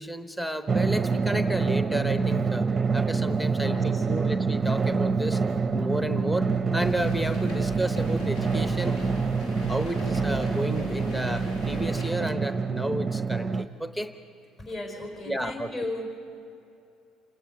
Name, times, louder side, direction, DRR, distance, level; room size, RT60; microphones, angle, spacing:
voice 1, 0.0-2.7 2.9-5.4 5.7-8.9 9.7-14.1 15.3-15.7, right 1 dB, 5° left, 8 dB, 0.9 m, -31 dB
Drum, 0.7-13.6, right 5 dB, 20° right, 0.7 m, -26 dB
voice 2, 3.6-4.1 14.6-16.2, left 1 dB, 35° left, 3 dB, 4.3 m, -35 dB
sound 1, 6.8-12.1, left 1 dB, 75° left, 5.7 m, -39 dB
28.0 x 16.5 x 9.3 m, 2.7 s
cardioid pair, 135°, 0 cm